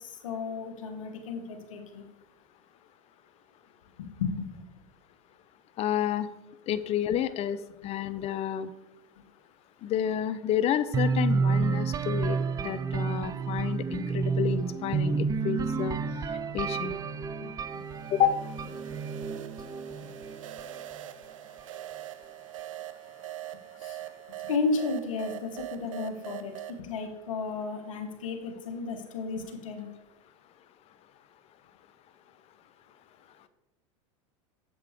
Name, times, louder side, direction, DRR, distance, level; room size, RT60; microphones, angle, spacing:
voice 1, 0.2-2.1 4.0-4.5 17.4-17.8 23.8-24.0 24.4-29.9, left 4 dB, 85° left, 5 dB, 1.5 m, -33 dB
voice 2, 5.8-6.3 6.7-8.7 9.8-16.0 16.5-16.9 18.1-18.4, left 10 dB, 40° left, 13 dB, 0.6 m, -29 dB
sound 1, 10.9-20.8, right 5 dB, 20° right, 0.5 m, -30 dB
sound 2, 17.7-26.8, right 14 dB, 85° right, 0.5 m, -43 dB
7.8 x 7.7 x 3.6 m, 0.98 s
hypercardioid pair, 100°, 17 cm